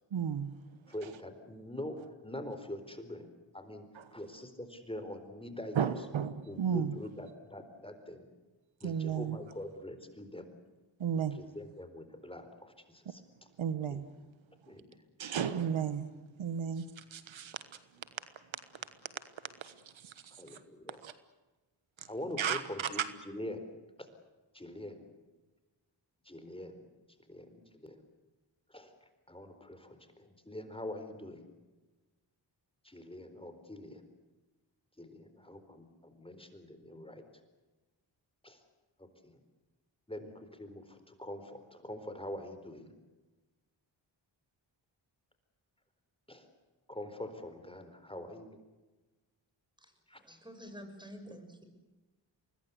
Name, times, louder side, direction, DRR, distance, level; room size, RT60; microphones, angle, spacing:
voice 1, 0.1-0.5 3.9-4.0 5.7-7.0 8.8-9.4 11.0-11.4 13.1-13.2 13.6-14.1 15.2-16.1 16.4-17.6 19.6-19.7 20.0-20.1 21.0-21.1 22.4-23.1, right 8 dB, 75° right, 13 dB, 1.4 m, -33 dB
voice 2, 0.9-2.0 2.2-3.3 3.5-3.9 4.1-5.9 6.5-8.3 8.8-10.5 11.3-13.2 13.9-14.0 14.7-14.9 20.4-21.0 22.1-23.7 24.5-25.0 26.3-26.7 27.3-28.0 28.7-28.9 29.3-31.5 32.8-34.0 35.0-37.2 38.4-38.6 39.0-39.4 40.1-42.9 46.3-46.5 46.9-48.6 50.1-50.2, left 1 dB, 10° left, 8 dB, 4.2 m, -44 dB
voice 3, 49.8-51.6, equal, 10° right, 7 dB, 6.1 m, -49 dB
24.5 x 20.0 x 8.2 m, 1.2 s
cardioid pair, 55°, 47 cm